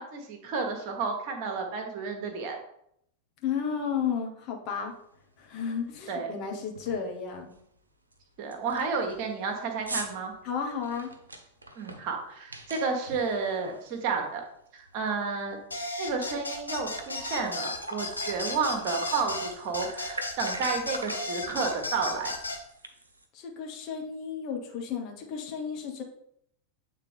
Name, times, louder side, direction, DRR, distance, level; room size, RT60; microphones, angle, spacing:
voice 1, 0.0-2.6 6.1-6.3 8.4-10.3 11.8-14.4 14.7-15.6 16.0-22.4, right 4 dB, 45° right, 4 dB, 1.3 m, -31 dB
voice 2, 3.4-4.9 5.4-7.5 10.4-11.1 23.3-26.0, left 7 dB, 40° left, 1 dB, 1.2 m, -33 dB
sound 1, 5.1-5.2 5.7-6.0 6.3-6.4 6.7-7.1 7.5-7.6 8.1-8.2 8.5-14.5 14.8-16.1 16.4-16.5 16.8-23.3, right 2 dB, 75° right, 0.8 m, -43 dB
sound 2, 15.7-22.6, left 2 dB, 80° left, 0.9 m, -34 dB
8.1 x 3.7 x 3.5 m, 0.72 s
figure-of-eight pair, 90°, 0 cm